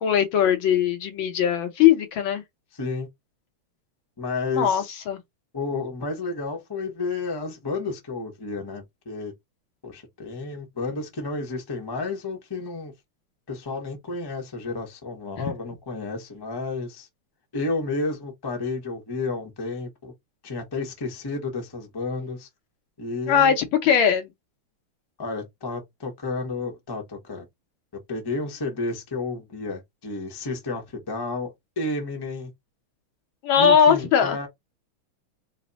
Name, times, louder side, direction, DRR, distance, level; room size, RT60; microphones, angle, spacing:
voice 1, 0.0-2.4 4.5-5.2 15.4-15.5 23.3-24.3 33.4-34.4, left 8 dB, 70° left, 1.5 m, -20 dB
voice 2, 2.7-3.1 4.2-4.9 5.5-9.3 9.8-12.9 13.5-17.1 17.5-20.1 20.4-22.5 23.0-23.5 25.2-27.4 28.1-32.5 33.6-34.5, left 3 dB, 25° left, 0.5 m, -31 dB
4.1 x 2.1 x 3.9 m
omnidirectional pair, 2.4 m